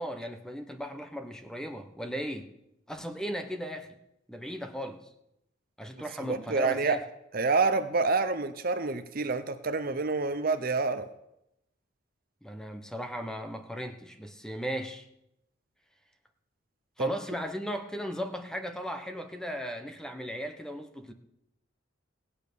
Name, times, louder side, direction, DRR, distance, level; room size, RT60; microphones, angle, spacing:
voice 1, 0.0-2.5 2.9-4.0 4.3-5.1 5.8-7.0 12.4-15.1 17.0-21.1, equal, 5° left, 7 dB, 1.0 m, -37 dB
voice 2, 6.2-7.0 7.3-11.1 17.0-17.1, right 3 dB, 50° right, 11 dB, 0.7 m, -27 dB
16.5 x 8.8 x 6.9 m, 0.84 s
head